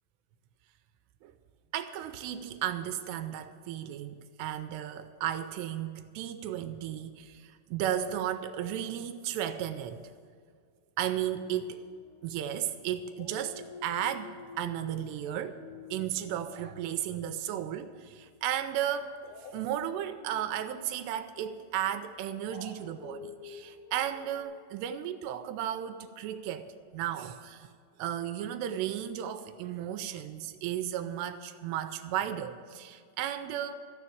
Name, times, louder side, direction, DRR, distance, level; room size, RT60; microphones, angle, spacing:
voice 1, 1.7-10.0 11.0-11.8 12.2-15.6 15.9-19.2 19.5-27.7 28.0-33.7, right 10 dB, 85° right, 10 dB, 2.7 m, -34 dB
Dog, 11.2-12.7 13.1-18.2 19.2-24.4, left 5 dB, 70° left, 2.1 m, -50 dB
13.5 x 7.0 x 8.5 m, 2.1 s
omnidirectional pair, 4.9 m